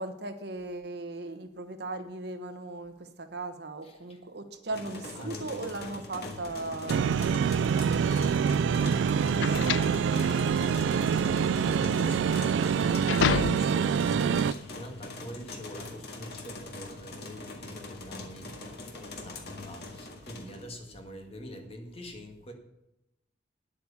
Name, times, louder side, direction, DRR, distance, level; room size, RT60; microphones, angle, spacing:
voice 1, 0.0-7.0 7.8-8.8 9.5-11.4, right 2 dB, 60° right, 8 dB, 1.2 m, -38 dB
sound 1, 4.7-20.6, left 2 dB, 60° left, 2.0 m, -42 dB
voice 2, 5.2-6.0 9.3-9.9 11.6-22.5, equal, 30° left, 3 dB, 1.9 m, -45 dB
sound 2, 6.9-14.5, right 7 dB, 80° right, 0.3 m, -26 dB
sound 3, 8.0-14.0, left 7 dB, 80° left, 0.4 m, -32 dB
9.8 x 8.6 x 7.0 m, 0.88 s
head